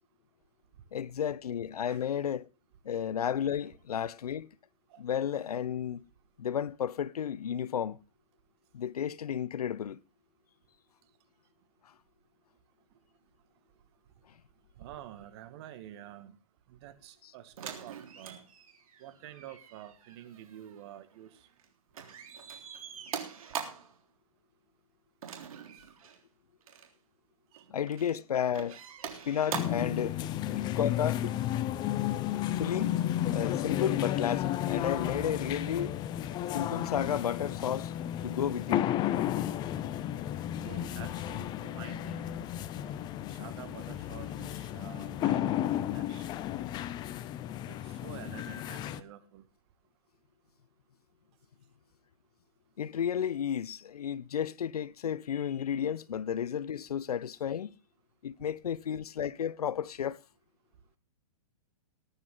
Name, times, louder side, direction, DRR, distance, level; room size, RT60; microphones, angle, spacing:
voice 1, 0.9-2.5 2.8-4.5 5.0-6.0 6.4-8.0 8.7-10.0 17.2-17.3 27.7-28.8 29.2-30.2 30.5-31.3 32.6-33.0 33.3-35.9 36.5-37.9 38.2-38.8 52.8-57.7 58.2-60.2, left 9 dB, 80° left, 0.7 m, -32 dB
voice 2, 14.8-16.4 16.7-18.5 19.0-21.3 27.5-27.6 35.8-35.9 40.6-42.4 43.4-46.3 47.7-49.4, right 12 dB, 45° right, 2.0 m, -48 dB
sound 1, 17.6-21.7 21.9-24.0 25.2-26.2 26.6-26.9 27.6-28.2 28.5-29.9 31.1-31.2, right 7 dB, 65° right, 3.5 m, -43 dB
sound 2, 29.5-49.0, left 12 dB, 20° left, 0.7 m, -33 dB
19.5 x 9.5 x 3.9 m
hypercardioid pair, 140°, 19 cm